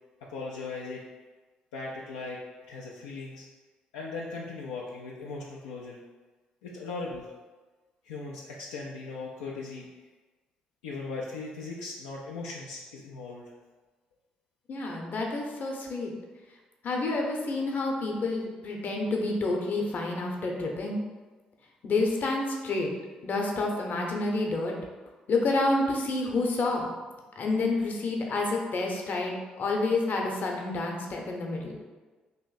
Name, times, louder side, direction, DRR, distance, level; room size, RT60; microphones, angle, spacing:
voice 1, 0.2-1.0 1.7-2.4 2.7-3.5 3.9-6.0 6.6-7.3 8.0-9.9 10.8-13.5, left 3 dB, 85° left, -3 dB, 0.4 m, -38 dB
voice 2, 14.7-16.1 16.8-21.0 21.8-22.9 23.2-24.7 25.3-26.9 27.4-31.8, left 2 dB, 55° left, 0 dB, 0.8 m, -29 dB
2.9 x 2.6 x 3.9 m, 1.3 s
hypercardioid pair, 50°, 4 cm